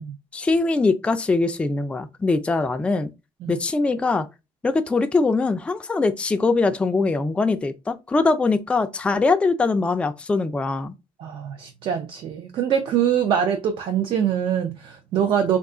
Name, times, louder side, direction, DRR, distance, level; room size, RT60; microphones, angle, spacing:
voice 1, 0.3-3.1 3.5-4.3 4.6-10.9, left 3 dB, 10° left, 0.3 m, -22 dB
voice 2, 11.2-15.6, right 8 dB, 55° right, 0.4 m, -23 dB
2.4 x 2.3 x 3.7 m
cardioid pair, 140°, 11 cm